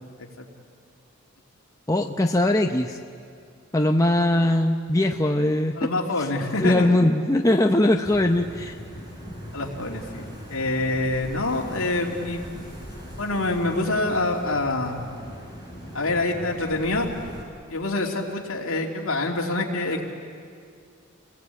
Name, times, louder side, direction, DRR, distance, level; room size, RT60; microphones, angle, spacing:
voice 1, 1.9-3.0 3.7-5.9 6.2-8.8, left 1 dB, 15° left, 3 dB, 0.7 m, -21 dB
voice 2, 5.8-6.9 9.5-12.4 13.2-15.0 15.9-17.1 17.7-20.1, left 2 dB, 70° left, 0 dB, 3.0 m, -26 dB
sound 1, 8.0-17.4, equal, 20° right, 5.7 m, -40 dB
29.0 x 20.0 x 8.5 m, 2.2 s
head